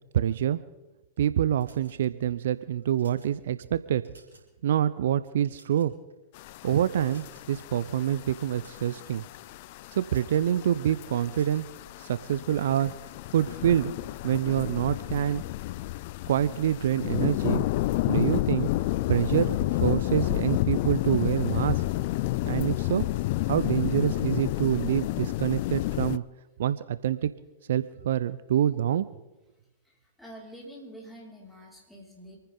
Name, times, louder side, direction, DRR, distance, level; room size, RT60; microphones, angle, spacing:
voice 1, 0.1-0.6 1.2-4.0 4.6-5.9 6.6-9.2 9.9-11.6 12.0-12.9 13.3-13.9 14.2-15.4 16.3-17.7 18.1-18.7 19.1-21.8 22.5-23.1 23.4-26.2 26.6-27.3 27.7-29.1, right 10 dB, 65° right, 15 dB, 0.6 m, -26 dB
sound 1, 1.6-2.3 2.8-3.3 3.9-4.5 4.9-5.0 5.4-6.1 7.1-7.6 8.4-9.0 10.1-10.5 11.3-11.7, right 3 dB, 80° right, 4.0 m, -57 dB
sound 2, 6.4-26.2, left 17 dB, 55° left, 0.4 m, -30 dB
voice 2, 29.8-32.4, equal, 5° left, -4 dB, 5.5 m, -47 dB
27.0 x 10.0 x 3.9 m, 1.1 s
figure-of-eight pair, 100°, 0 cm